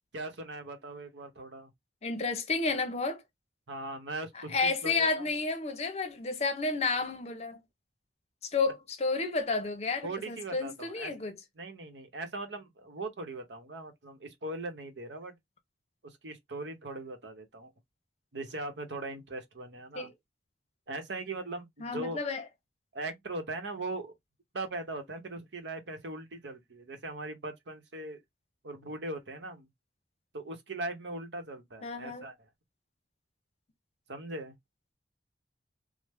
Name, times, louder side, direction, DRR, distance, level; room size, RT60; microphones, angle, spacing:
voice 1, 0.1-1.7 3.7-5.3 10.0-11.1 11.6-15.4 16.0-17.7 18.3-20.1 20.9-22.2 22.9-24.1 24.5-28.2 28.6-29.7 30.3-32.3 34.1-34.5, right 2 dB, 90° right, 0.8 m, -40 dB
voice 2, 2.0-3.2 4.3-7.6 8.4-11.4 19.9-20.1 21.8-22.4 31.8-32.3, left 4 dB, 35° left, 0.6 m, -31 dB
3.2 x 2.0 x 3.3 m
head